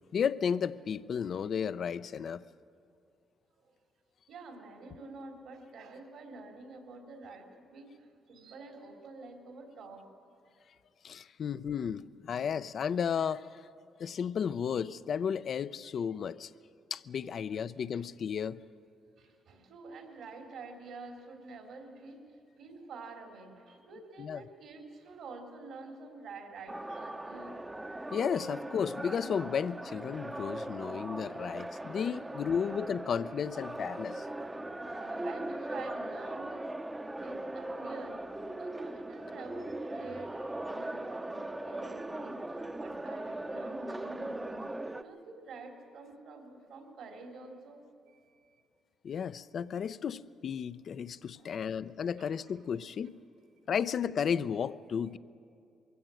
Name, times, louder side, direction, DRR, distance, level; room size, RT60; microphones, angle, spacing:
voice 1, 0.1-2.4 11.0-13.5 14.0-16.5 16.9-18.6 24.2-24.4 28.1-34.3 49.0-53.2 53.7-55.2, left 7 dB, 55° left, 0.5 m, -33 dB
voice 2, 4.3-10.1 17.9-18.0 19.2-27.7 32.5-32.7 34.8-36.7 37.2-38.2 38.4-42.4 42.8-44.6 45.0-47.8 48.1-48.6 49.1-49.3 51.4-51.8 52.2-52.3 53.6-53.7, right 3 dB, 75° right, 3.5 m, -48 dB
sound 1, 26.7-45.0, right 1 dB, 15° right, 0.7 m, -39 dB
22.5 x 16.5 x 7.7 m
cardioid pair, 90°, 0 cm